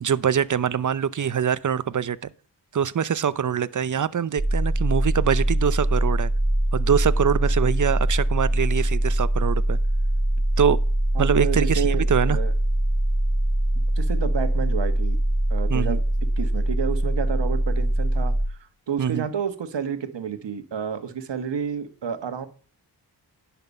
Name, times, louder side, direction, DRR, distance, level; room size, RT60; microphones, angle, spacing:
voice 1, 0.0-2.3 2.7-6.3 6.7-9.8 10.6-10.8 11.2-12.4 15.7-16.0 19.0-19.3, right 8 dB, 45° right, 0.7 m, -24 dB
sound 1, 4.4-18.5, right 1 dB, 15° right, 2.0 m, -23 dB
voice 2, 11.1-12.5 14.0-15.2 15.5-16.0 16.4-18.6 18.9-22.5, right 7 dB, 70° right, 1.5 m, -30 dB
10.5 x 6.0 x 5.4 m
cardioid pair, 50°, 44 cm